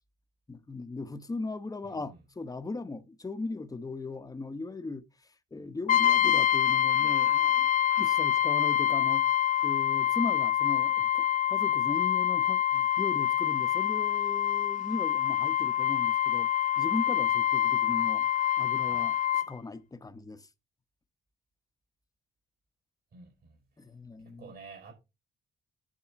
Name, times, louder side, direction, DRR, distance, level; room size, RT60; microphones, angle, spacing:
voice 1, 0.5-5.0 5.5-7.7 8.0-9.3 9.6-16.5 16.8-20.5 23.8-24.5, left 3 dB, 20° left, 1.0 m, -38 dB
voice 2, 1.8-2.2 18.9-19.0 23.1-23.6 24.2-24.9, right 4 dB, 55° right, 4.8 m, -50 dB
Brass instrument, 5.9-19.5, left 11 dB, 40° left, 0.4 m, -26 dB
10.5 x 3.7 x 6.9 m
cardioid pair, 90°, 20 cm